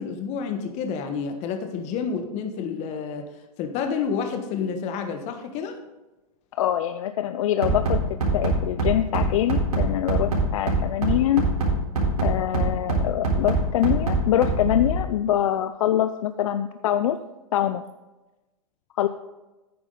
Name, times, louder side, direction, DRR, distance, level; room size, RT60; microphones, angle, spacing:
voice 1, 0.0-3.3 3.6-5.8, left 6 dB, 35° left, 6 dB, 1.3 m, -29 dB
voice 2, 6.6-8.0 8.3-11.4 12.2-17.2 17.5-17.8 19.0-19.1, left 11 dB, 60° left, 10 dB, 0.5 m, -24 dB
Bass drum, 7.6-15.0, right 3 dB, 85° right, 4.2 m, -23 dB
10.0 x 9.5 x 3.9 m, 1.1 s
hypercardioid pair, 120°, 19 cm